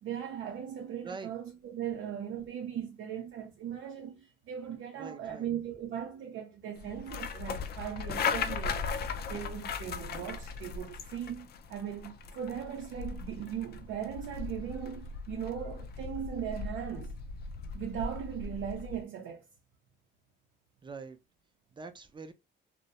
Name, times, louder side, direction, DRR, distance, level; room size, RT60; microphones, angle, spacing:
voice 1, 0.0-8.8 9.3-17.1 17.7-19.4, right 9 dB, 75° right, 0.5 m, -38 dB
voice 2, 4.9-5.5 20.8-21.2 21.8-22.3, right 4 dB, 25° right, 0.5 m, -44 dB
sound 1, 6.8-19.0, left 5 dB, 55° left, 0.4 m, -38 dB
2.3 x 2.1 x 2.7 m
cardioid pair, 90°, 20 cm